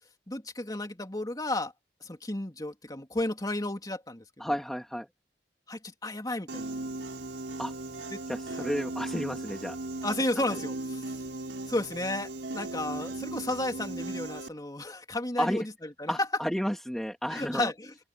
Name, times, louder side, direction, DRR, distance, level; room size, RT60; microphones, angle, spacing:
voice 1, 0.3-1.7 2.0-4.5 5.7-6.6 8.1-8.2 8.5-8.6 10.0-11.0 11.7-15.7 16.0-16.1 17.3-17.9, left 2 dB, 20° left, 3.1 m, -33 dB
voice 2, 4.4-5.1 7.6-7.7 8.3-9.8 10.5-10.6 15.4-15.6 16.1-17.7, equal, ahead, 2.1 m, -32 dB
Piano, 6.5-14.5, right 2 dB, 85° right, 4.2 m, -37 dB
open air
head